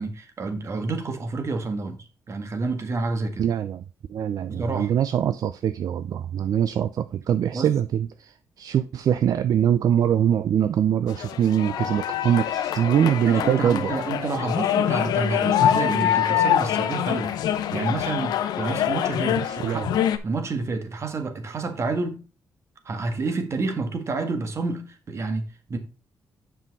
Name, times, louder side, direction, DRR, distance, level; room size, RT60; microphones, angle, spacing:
voice 1, 0.0-3.4 4.5-5.0 7.5-7.7 13.2-17.3 17.7-19.9 20.2-22.2 22.9-25.8, right 3 dB, 45° right, 1.7 m, -29 dB
voice 2, 3.4-3.8 4.1-13.9 19.4-19.9, right 9 dB, 65° right, 0.4 m, -23 dB
sound 1, 11.1-20.2, left 10 dB, 85° left, 0.7 m, -24 dB
7.4 x 5.7 x 4.0 m
cardioid pair, 100°, 7 cm